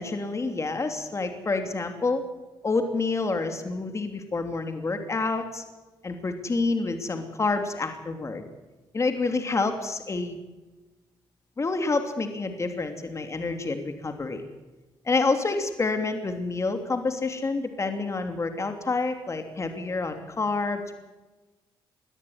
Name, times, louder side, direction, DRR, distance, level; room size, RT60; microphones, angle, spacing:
voice 1, 0.0-2.2 2.6-5.6 6.0-8.4 8.9-10.4 11.6-14.4 15.0-20.9, left 3 dB, 35° left, 6 dB, 3.0 m, -28 dB
22.0 x 13.5 x 9.6 m, 1.1 s
cardioid pair, 75°, 9 cm